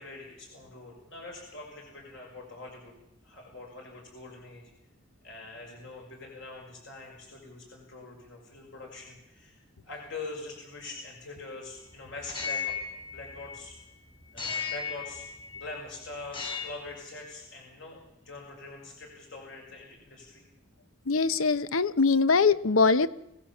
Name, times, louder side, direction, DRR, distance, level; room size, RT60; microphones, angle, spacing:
voice 1, 0.0-2.9 3.2-4.7 5.2-9.6 9.8-13.8 14.3-15.2 15.6-20.5, left 3 dB, 60° left, 0 dB, 5.9 m, -44 dB
sound 1, 12.2-13.8 14.4-15.7 16.2-17.0, left 6 dB, 25° left, 3.1 m, -36 dB
voice 2, 21.1-23.1, left 4 dB, 85° left, 15 dB, 0.9 m, -22 dB
25.0 x 17.0 x 7.2 m, 0.82 s
head